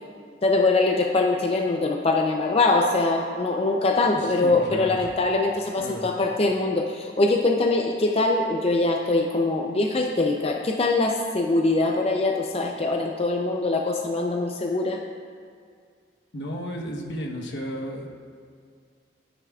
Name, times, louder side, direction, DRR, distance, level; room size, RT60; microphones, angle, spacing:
voice 1, 0.4-15.0, left 2 dB, 35° left, 1 dB, 0.5 m, -23 dB
voice 2, 4.2-5.1 5.7-6.1 16.3-18.1, equal, 75° left, 0 dB, 1.1 m, -33 dB
12.5 x 9.4 x 2.4 m, 2.1 s
head